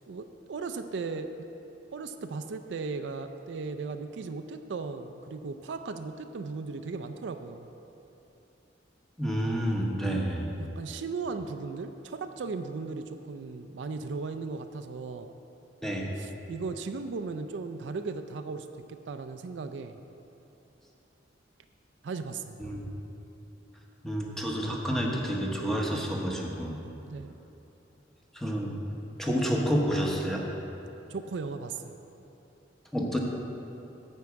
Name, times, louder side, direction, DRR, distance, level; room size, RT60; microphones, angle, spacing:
voice 1, 0.1-1.3 1.9-7.7 10.0-10.2 10.6-15.3 16.2-20.0 22.0-22.7 27.1-27.3 31.1-32.0, right 4 dB, 70° right, 8 dB, 0.4 m, -37 dB
voice 2, 9.2-10.5 15.8-16.1 22.6-22.8 24.0-26.8 28.3-28.8 29.2-30.4 32.9-33.2, equal, ahead, -1 dB, 0.9 m, -29 dB
9.7 x 4.6 x 7.1 m, 3.0 s
head